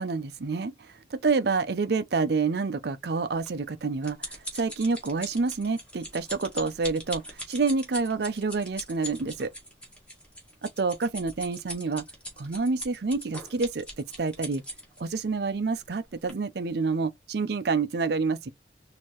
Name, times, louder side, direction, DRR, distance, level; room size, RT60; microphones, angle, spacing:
voice 1, 0.0-9.5 10.6-12.1 12.4-14.6 15.0-18.5, right 4 dB, 60° right, 0.5 m, -28 dB
sound 1, 3.5-15.1 15.8-16.0 16.3-16.4, equal, 5° left, 1.6 m, -40 dB
4.5 x 2.8 x 3.0 m
head